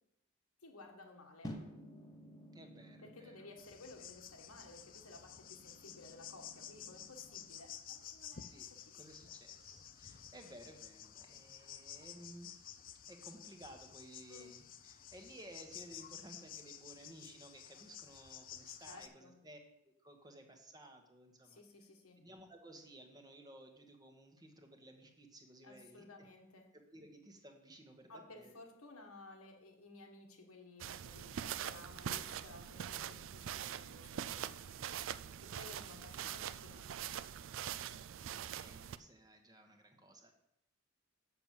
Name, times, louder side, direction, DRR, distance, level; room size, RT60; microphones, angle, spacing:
voice 1, 0.6-1.6 3.0-8.9 14.3-14.5 18.8-19.4 21.4-22.3 25.6-26.8 28.1-34.9 35.4-37.0, left 2 dB, 85° left, 2 dB, 1.5 m, -56 dB
sound 1, 1.4-7.7, equal, 15° left, 0.9 m, -54 dB
voice 2, 2.5-3.5 8.5-12.8 13.1-19.6 19.8-21.6 22.2-26.0 26.7-28.5 38.5-40.3, right 1 dB, 20° right, 4 dB, 1.1 m, -56 dB
sound 2, 3.6-19.1, left 10 dB, 40° left, 0.5 m, -52 dB
sound 3, 30.8-39.0, right 9 dB, 60° right, 0.4 m, -43 dB
6.9 x 6.0 x 7.3 m, 0.78 s
head